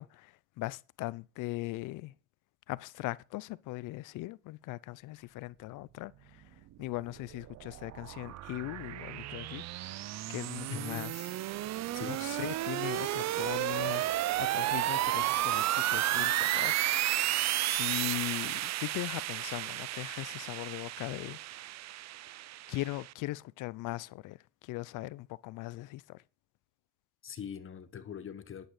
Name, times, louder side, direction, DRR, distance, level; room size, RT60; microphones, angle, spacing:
voice 1, 0.0-2.1 2.7-9.6 10.3-11.3 12.1-14.0 14.4-16.8 17.6-21.4 22.7-26.2, left 19 dB, 65° left, 0.6 m, -39 dB
sound 1, 7.1-23.1, right 14 dB, 55° right, 0.6 m, -33 dB
voice 2, 10.7-11.1 11.9-12.2 27.2-28.7, left 8 dB, 40° left, 1.2 m, -42 dB
11.0 x 9.1 x 4.9 m
supercardioid pair, 95°, 33 cm